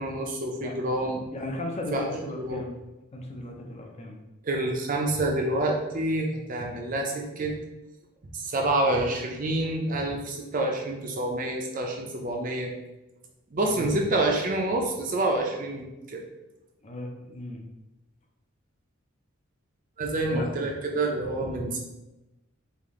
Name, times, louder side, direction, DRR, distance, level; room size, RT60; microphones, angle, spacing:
voice 1, 0.0-1.3 1.9-2.0 2.4-2.6 4.4-7.5 8.3-12.7 13.5-16.2 20.0-21.8, right 2 dB, 35° right, 1 dB, 0.4 m, -27 dB
voice 2, 1.3-2.7 3.1-4.2 13.6-13.9 16.8-17.6 20.3-20.4, left 1 dB, 30° left, 1 dB, 0.5 m, -35 dB
3.4 x 2.5 x 3.6 m, 1.0 s
head